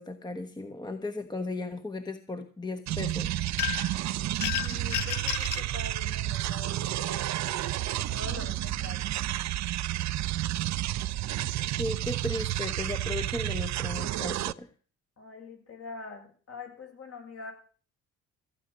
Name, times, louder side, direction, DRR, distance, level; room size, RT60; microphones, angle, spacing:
voice 1, 0.0-3.3 11.8-14.7, left 2 dB, 15° left, 8 dB, 1.2 m, -36 dB
sound 1, 2.9-14.5, right 14 dB, 65° right, 0.6 m, -31 dB
sound 2, 3.6-4.0 4.4-5.7, left 15 dB, 80° left, 0.7 m, -31 dB
voice 2, 4.6-7.3 7.9-9.5 15.2-17.5, left 4 dB, 50° left, 2 dB, 6.7 m, -44 dB
15.5 x 9.4 x 6.2 m, 0.41 s
cardioid pair, 90°, 30 cm